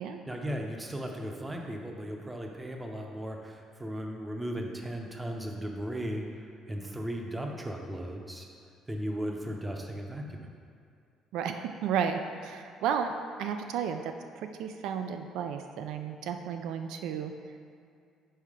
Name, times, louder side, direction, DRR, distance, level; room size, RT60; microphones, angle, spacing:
voice 1, 0.3-8.5 8.9-10.5, equal, 10° right, 2 dB, 0.6 m, -36 dB
voice 2, 11.3-17.3, right 7 dB, 80° right, 6 dB, 0.4 m, -33 dB
5.5 x 4.4 x 4.9 m, 2.4 s
cardioid pair, 125°, 0 cm